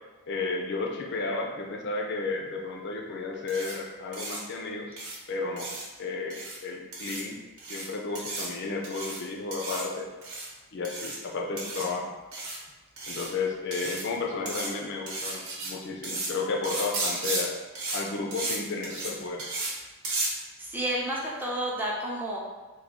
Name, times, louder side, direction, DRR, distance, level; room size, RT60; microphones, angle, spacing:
voice 1, 0.3-5.0 5.3-5.7 6.0-7.4 7.7-10.1 10.7-12.1 13.1-17.5 17.9-19.5, left 3 dB, 55° left, 0 dB, 0.5 m, -33 dB
sound 1, 3.5-3.7 4.1-4.4 5.0-5.2 5.6-5.8 6.3-6.6 6.9-7.2 7.6-7.9 8.1-8.5 8.8-9.2 9.5-9.8 10.2-10.5 10.8-11.2 11.6-11.8 12.3-12.6 13.0-13.3 13.7-14.1 14.5-14.7 15.1-15.7 16.0-16.3 16.6-17.4 17.7-18.0 18.3-18.6 18.8-19.1 19.4-19.7 20.0-20.3, right 2 dB, 80° right, 1.0 m, -34 dB
voice 2, 20.6-22.4, right 1 dB, 10° right, -4 dB, 0.6 m, -30 dB
3.5 x 2.3 x 3.5 m, 1.2 s
head